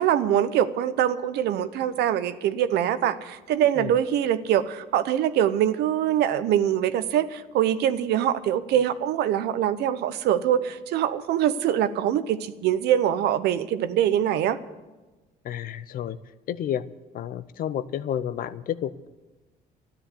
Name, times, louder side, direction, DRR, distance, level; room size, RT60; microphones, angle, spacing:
voice 1, 0.0-14.6, right 10 dB, 75° right, 12 dB, 0.9 m, -23 dB
voice 2, 15.4-16.2 16.5-16.8 17.1-19.1, left 10 dB, 60° left, 15 dB, 0.7 m, -30 dB
13.0 x 10.5 x 8.3 m, 1.2 s
cardioid pair, 110°, 17 cm